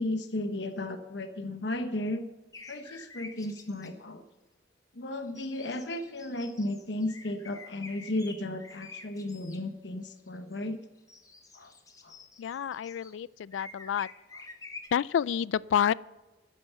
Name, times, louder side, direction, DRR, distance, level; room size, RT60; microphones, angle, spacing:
voice 1, 0.0-2.2 2.7-4.2 4.9-10.8 11.5-11.7 12.0-12.1, left 1 dB, 65° left, 8 dB, 1.1 m, -34 dB
sound 1, 2.5-3.9 5.2-9.6 10.1-10.6 11.0-13.2 13.5-14.9, left 3 dB, 20° left, 1.0 m, -49 dB
voice 2, 12.4-14.1 14.9-15.9, left 8 dB, 85° left, 21 dB, 0.3 m, -29 dB
12.0 x 9.3 x 6.9 m, 1.1 s
head